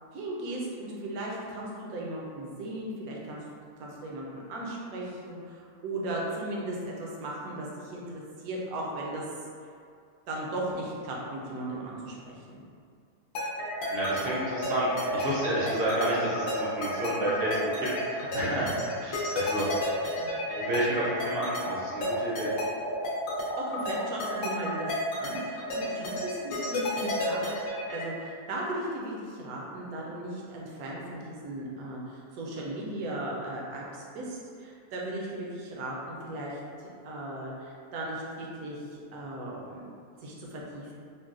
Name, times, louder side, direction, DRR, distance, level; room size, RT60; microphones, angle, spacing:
voice 1, 0.1-3.4 3.8-9.2 10.3-12.6 20.2-20.3 23.6-24.9 25.2-27.5 27.9-39.9 40.2-40.9, right 1 dB, 75° right, -3 dB, 1.1 m, -37 dB
sound 1, 13.4-28.1, left 1 dB, 65° left, 0.9 m, -31 dB
voice 2, 13.9-18.7 19.0-19.7 20.5-22.5, right 1 dB, 60° right, -8 dB, 0.6 m, -30 dB
3.8 x 2.1 x 2.4 m, 2.2 s
omnidirectional pair, 1.6 m